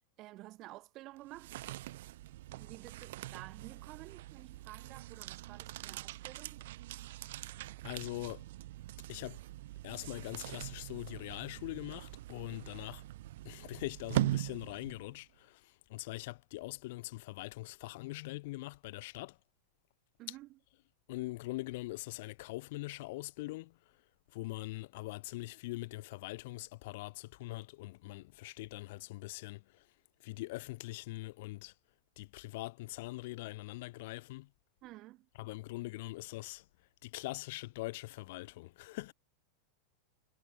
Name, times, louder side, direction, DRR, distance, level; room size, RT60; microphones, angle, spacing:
voice 1, 0.2-1.5 2.6-6.7 20.2-20.6 34.8-35.3, right 17 dB, 35° right, 1.1 m, -51 dB
sound 1, 1.2-15.2, right 16 dB, 55° right, 0.6 m, -42 dB
voice 2, 7.8-8.4 9.1-9.4 9.8-13.0 13.4-15.6 15.9-19.4 21.1-23.7 24.3-29.6 30.2-31.7 32.2-34.5 35.4-36.6 37.0-39.1, left 20 dB, 50° left, 0.9 m, -42 dB
figure-of-eight pair, 90°, 0 cm